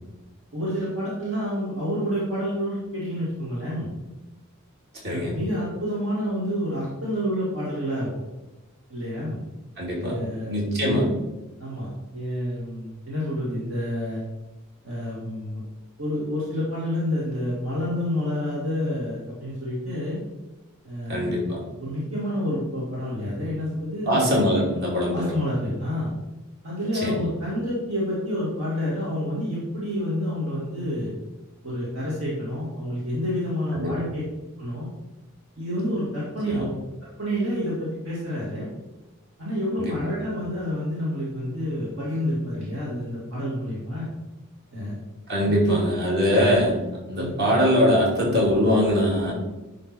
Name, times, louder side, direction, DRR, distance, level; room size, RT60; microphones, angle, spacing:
voice 1, 0.5-3.9 5.1-8.1 8.9-9.4 10.0-11.1 11.6-14.2 14.8-15.6 16.0-20.2 20.8-21.4 21.8-24.4 25.1-26.1 26.6-31.1 31.6-34.2 34.6-34.9 35.6-36.7 37.2-38.7 39.4-44.1 44.7-45.0 45.4-45.8 47.1-47.4, equal, 65° right, -7 dB, 2.3 m, -29 dB
voice 2, 5.0-5.3 9.8-10.2 10.5-11.1 21.1-21.6 24.1-25.3 27.0-27.2 33.8-33.9 36.5-36.6 39.8-39.9 45.3-46.7 47.1-49.3, equal, 50° right, -4 dB, 2.6 m, -22 dB
10.5 x 3.8 x 4.4 m, 1.1 s
head